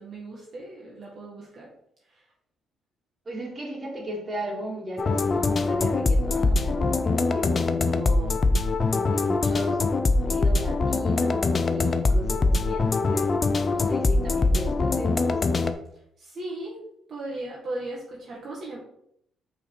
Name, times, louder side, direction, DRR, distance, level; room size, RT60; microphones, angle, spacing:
voice 1, 0.0-1.7 2.0-2.3 15.9-16.8 17.1-18.8, right 2 dB, 50° right, -3 dB, 1.7 m, -37 dB
voice 2, 3.3-8.4 8.8-9.8 10.2-13.3 13.7-15.3, equal, 25° right, -2 dB, 2.6 m, -36 dB
sound 1, 5.0-15.7, left 3 dB, 35° left, 0.6 m, -23 dB
5.5 x 4.1 x 5.9 m, 0.74 s
cardioid pair, 90°, 0 cm